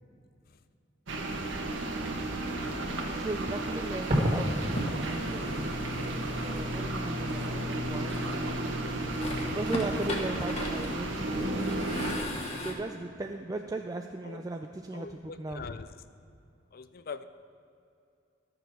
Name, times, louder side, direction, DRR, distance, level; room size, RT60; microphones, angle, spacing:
sound 1, 1.1-12.1, right 1 dB, 90° right, 1.4 m, -33 dB
Fireworks, 1.4-7.1, equal, 40° right, 2.0 m, -35 dB
voice 1, 3.1-5.8 6.4-8.2 9.5-11.9 12.6-15.6, right 2 dB, 20° right, 4 dB, 0.4 m, -37 dB
sound 2, 4.0-6.6 7.3-8.6 9.0-12.7, left 1 dB, 35° left, 1.3 m, -38 dB
voice 2, 14.9-15.9 16.7-17.2, left 5 dB, 50° left, 12 dB, 0.5 m, -42 dB
13.0 x 6.8 x 6.1 m, 2.5 s
head